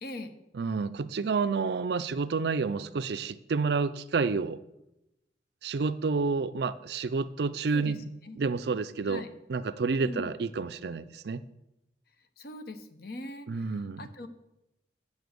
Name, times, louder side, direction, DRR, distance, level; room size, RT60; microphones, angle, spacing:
voice 1, 0.0-0.3 7.7-8.0 8.2-8.4 9.1-9.3 10.0-10.3 12.4-14.3, left 2 dB, 55° left, 9 dB, 0.9 m, -41 dB
voice 2, 0.5-4.6 5.6-8.0 8.4-9.2 9.5-11.4 13.5-14.1, right 4 dB, 60° right, 14 dB, 0.4 m, -29 dB
7.2 x 6.7 x 8.0 m, 0.90 s
head